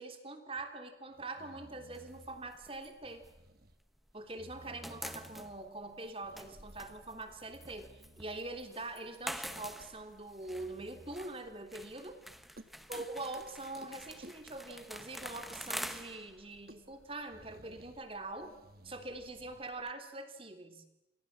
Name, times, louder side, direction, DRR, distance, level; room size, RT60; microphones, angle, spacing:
voice 1, 0.0-3.2 4.1-12.2 12.9-18.5 18.8-20.8, right 2 dB, 30° right, 7 dB, 3.1 m, -44 dB
sound 1, 0.6-0.7 1.1-2.5 3.0-3.8 4.2-5.7 6.2-6.9 7.3-8.7 9.1-9.9 10.4-11.3 11.8-11.9 12.3-12.4 12.6-13.5 13.8-13.9 14.2-15.5 15.8-15.9 16.2-16.3 16.5-18.0 18.4-19.6, right 1 dB, 50° right, 1.8 m, -57 dB
sound 2, 1.9-4.2 4.5-19.9, equal, ahead, 1.3 m, -48 dB
29.5 x 26.5 x 7.4 m, 0.91 s
head